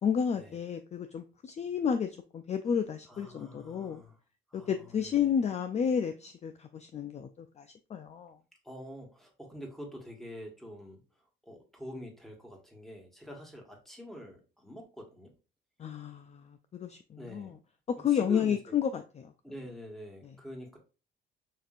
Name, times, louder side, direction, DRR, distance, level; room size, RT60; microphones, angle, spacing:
voice 1, 0.0-4.0 4.5-8.4 15.8-17.5 17.9-19.3, left 7 dB, 35° left, 0.4 m, -31 dB
voice 2, 3.1-4.2 4.5-5.3 8.6-15.3 17.2-17.6 18.1-18.8 19.4-20.8, equal, ahead, 1.4 m, -46 dB
5.7 x 2.6 x 2.4 m
cardioid pair, 90°, 20 cm